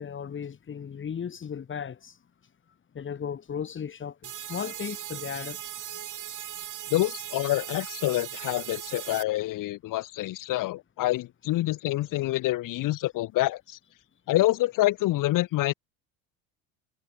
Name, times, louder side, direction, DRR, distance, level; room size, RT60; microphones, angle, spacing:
voice 1, 0.0-2.2 2.9-5.6, left 7 dB, 30° left, 2.0 m, -36 dB
sound 1, 4.2-9.2, right 11 dB, 50° right, 4.1 m, -38 dB
voice 2, 6.9-13.8 14.3-15.7, left 16 dB, 50° left, 1.0 m, -27 dB
supercardioid pair, 95°, 40 cm